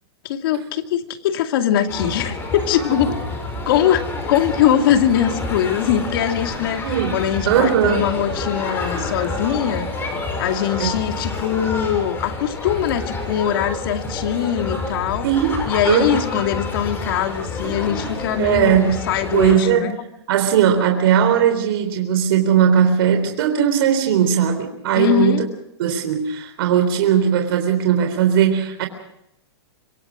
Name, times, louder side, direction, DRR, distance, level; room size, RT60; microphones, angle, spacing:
voice 1, 0.2-3.1 3.7-10.1 10.4-15.3 15.7-19.9 25.0-25.5, left 10 dB, 55° left, 6 dB, 2.5 m, -22 dB
sound 1, 1.9-19.6, left 3 dB, 15° left, 6.3 m, -28 dB
voice 2, 6.8-7.2 7.5-8.1 10.8-10.9 15.2-16.4 18.4-19.0 19.3-20.0 20.3-25.4 25.8-28.9, right 9 dB, 60° right, 6 dB, 3.7 m, -18 dB
25.5 x 24.0 x 5.1 m, 0.80 s
supercardioid pair, 155°, 14 cm